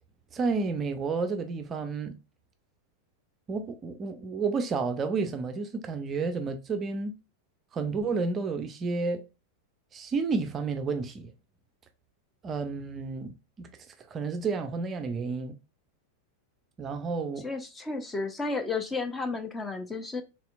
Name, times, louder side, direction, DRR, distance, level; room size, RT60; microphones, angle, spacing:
voice 1, 0.3-2.2 3.5-7.1 7.7-9.2 9.9-11.3 12.4-13.7 14.1-15.6 16.8-17.5, right 4 dB, 25° right, 0.5 m, -31 dB
voice 2, 17.4-20.2, left 3 dB, 15° left, 0.7 m, -32 dB
4.2 x 3.4 x 2.4 m
figure-of-eight pair, 90°, 0 cm